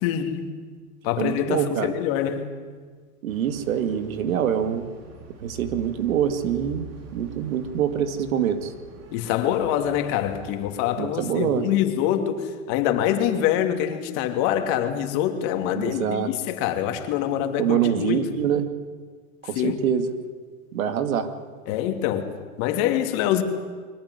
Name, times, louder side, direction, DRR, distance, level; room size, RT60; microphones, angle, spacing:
voice 1, 0.0-0.4 1.0-2.5 9.1-18.3 19.5-19.8 21.7-23.4, left 10 dB, 45° left, 6 dB, 2.9 m, -25 dB
voice 2, 1.2-1.9 3.2-4.9 5.4-8.7 11.0-11.7 15.8-16.3 17.6-18.6 19.4-20.1 20.7-21.3, right 9 dB, 75° right, 9 dB, 2.5 m, -25 dB
sound 1, 3.3-10.7, right 3 dB, 35° right, 4.2 m, -45 dB
23.5 x 18.0 x 9.8 m, 1.5 s
hypercardioid pair, 130°, 42 cm